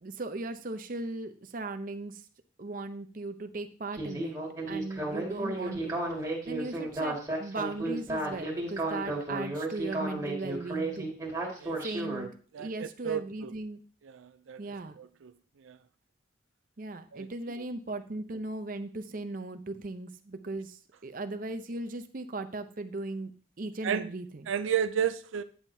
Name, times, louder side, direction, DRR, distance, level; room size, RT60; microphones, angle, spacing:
voice 1, 0.0-2.2 2.6-11.1 11.8-13.8 14.6-15.0 16.8-23.3 23.6-24.5, right 2 dB, 45° right, 8 dB, 0.6 m, -38 dB
Speech synthesizer, 3.9-12.3, right 2 dB, 15° right, 1.9 m, -33 dB
voice 2, 12.5-13.5 14.0-14.6 15.0-15.3 15.6-15.8 17.1-17.3 23.8-24.1 24.5-25.4, right 8 dB, 85° right, 12 dB, 0.4 m, -32 dB
10.5 x 7.1 x 2.7 m, 0.42 s
head